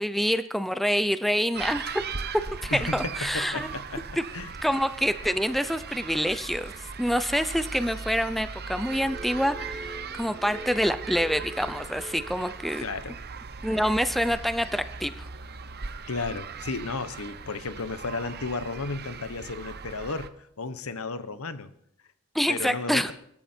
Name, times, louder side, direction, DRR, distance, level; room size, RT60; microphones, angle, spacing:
voice 1, 0.0-2.0 2.6-3.7 4.2-4.3 4.6-6.7 7.0-12.9 13.6-15.3 22.3-23.1, equal, ahead, 11 dB, 0.6 m, -26 dB
sound 1, 1.5-20.3, right 5 dB, 45° right, 1.0 m, -39 dB
voice 2, 2.7-4.1 4.3-4.5 12.8-13.2 16.1-20.3 20.6-21.7 22.5-23.1, left 3 dB, 70° left, 13 dB, 1.1 m, -33 dB
sound 2, 8.9-13.1, equal, 20° right, 1.3 m, -43 dB
24.0 x 13.5 x 4.5 m, 0.75 s
head